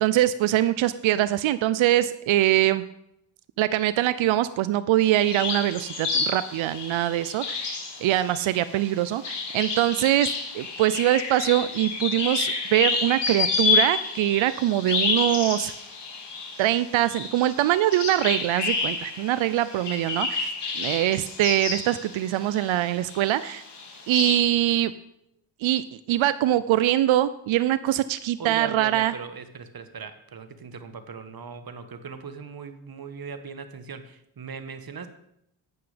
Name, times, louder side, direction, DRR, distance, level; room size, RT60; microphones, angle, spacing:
voice 1, 0.0-2.9 3.6-15.7 16.6-23.6 24.1-24.9 25.6-29.1, right 13 dB, 80° right, 14 dB, 0.6 m, -23 dB
sound 1, 5.1-22.8 23.1-24.4, left 4 dB, 60° left, 3.4 m, -29 dB
voice 2, 28.4-35.1, right 6 dB, 50° right, 9 dB, 1.6 m, -38 dB
12.0 x 8.9 x 5.1 m, 0.78 s
cardioid pair, 60°, 47 cm